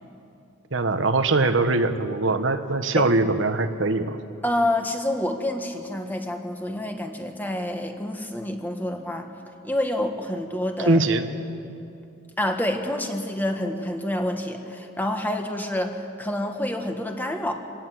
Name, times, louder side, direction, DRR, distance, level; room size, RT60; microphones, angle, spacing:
voice 1, 0.7-4.2 10.9-11.2, right 3 dB, 70° right, 8 dB, 1.2 m, -22 dB
voice 2, 4.4-9.3 9.6-11.0 12.4-17.5, left 1 dB, 10° left, 4 dB, 1.4 m, -28 dB
24.5 x 18.0 x 7.8 m, 2.7 s
head